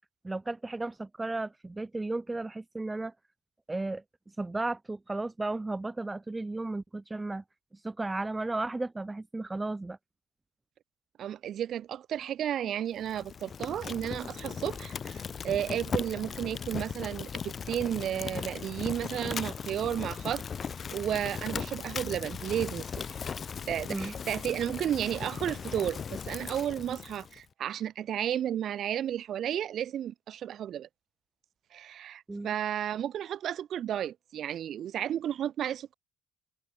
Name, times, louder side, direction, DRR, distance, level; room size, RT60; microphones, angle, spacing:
voice 1, 0.2-3.1 3.7-4.0 4.4-7.4 7.8-10.0 19.3-19.4 23.9-24.1 32.3-32.5, right 2 dB, 15° right, 0.3 m, -34 dB
voice 2, 11.2-20.4 20.9-23.2 23.7-30.9 31.7-35.9, right 10 dB, 60° right, 0.6 m, -33 dB
Fire, 13.0-27.4, left 6 dB, 40° left, 0.7 m, -38 dB
cardioid pair, 90°, 0 cm